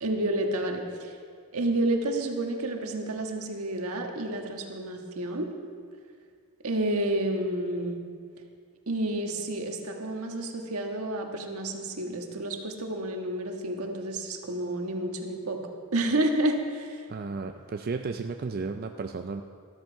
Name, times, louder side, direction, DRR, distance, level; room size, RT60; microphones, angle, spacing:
voice 1, 0.0-1.1 1.5-5.5 6.6-8.0 8.9-15.6 15.9-17.0, right 1 dB, 85° right, 3 dB, 1.5 m, -30 dB
voice 2, 17.1-19.4, right 4 dB, 45° right, 6 dB, 0.4 m, -33 dB
13.0 x 13.0 x 4.6 m, 2.1 s
head